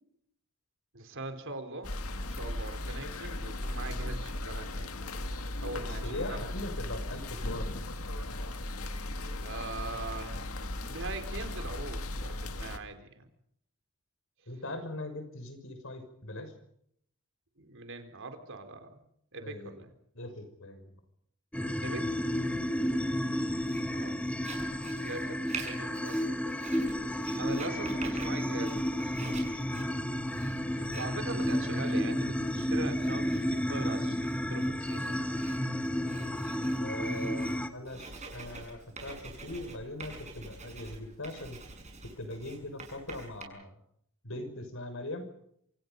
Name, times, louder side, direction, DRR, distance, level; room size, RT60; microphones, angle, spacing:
voice 1, 0.9-1.9 2.3-4.9 5.6-6.5 9.4-10.4 10.7-13.3 17.6-19.0 19.3-19.9 21.8-22.2 23.8-24.2 25.0-26.6 27.1-29.4 30.7-35.4, right 2 dB, 60° right, 7 dB, 4.0 m, -42 dB
sound 1, 1.8-12.8, left 1 dB, 85° left, 2.1 m, -37 dB
voice 2, 5.7-7.8 14.5-16.5 19.4-19.8 20.1-20.9 22.6-22.8 30.8-31.3 36.8-41.6 42.2-43.7 44.2-45.3, left 1 dB, 65° left, 8 dB, 6.1 m, -41 dB
sound 2, 21.5-37.7, equal, 5° left, 1.4 m, -32 dB
Writing, 23.6-43.4, right 4 dB, 35° right, 6.9 m, -47 dB
27.5 x 27.0 x 5.4 m, 0.71 s
head